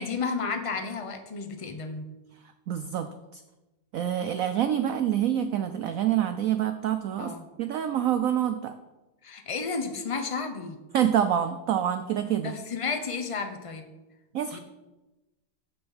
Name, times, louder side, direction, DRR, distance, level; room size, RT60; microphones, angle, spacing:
voice 1, 0.0-2.1 7.2-7.5 9.2-10.8 12.4-13.8 14.5-14.6, left 4 dB, 40° left, 5 dB, 0.5 m, -32 dB
voice 2, 2.7-3.4 3.9-8.8 10.9-12.6 14.3-14.6, right 10 dB, 85° right, 10 dB, 0.7 m, -27 dB
7.1 x 6.3 x 7.2 m, 1.1 s
omnidirectional pair, 2.0 m